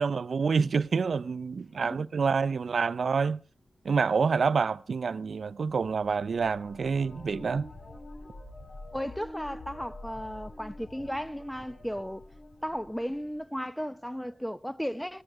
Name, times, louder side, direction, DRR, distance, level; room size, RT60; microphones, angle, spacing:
voice 1, 0.0-3.4 3.8-7.7, right 5 dB, 70° right, 0.6 m, -27 dB
sound 1, 0.6-3.0 5.6-13.4 13.7-14.4, left 2 dB, 55° left, 3.9 m, -48 dB
voice 2, 8.9-12.3 12.6-15.2, equal, 5° left, 0.8 m, -35 dB
17.5 x 15.0 x 3.6 m
cardioid pair, 60°, 0 cm